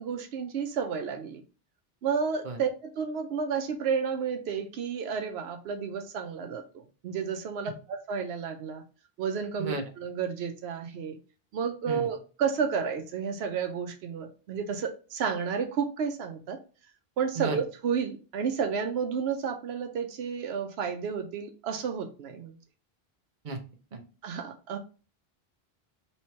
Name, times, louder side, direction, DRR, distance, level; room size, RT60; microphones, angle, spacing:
voice 1, 0.0-1.4 2.0-8.8 9.2-11.2 11.5-16.6 17.2-22.6 24.2-24.8, right 6 dB, 85° right, 6 dB, 0.9 m, -31 dB
voice 2, 2.4-2.6 9.6-9.8 11.9-12.1 17.4-17.6 23.4-23.6 23.9-24.0, right 3 dB, 50° right, 4 dB, 0.9 m, -33 dB
3.2 x 3.1 x 4.2 m, 0.36 s
omnidirectional pair, 1.0 m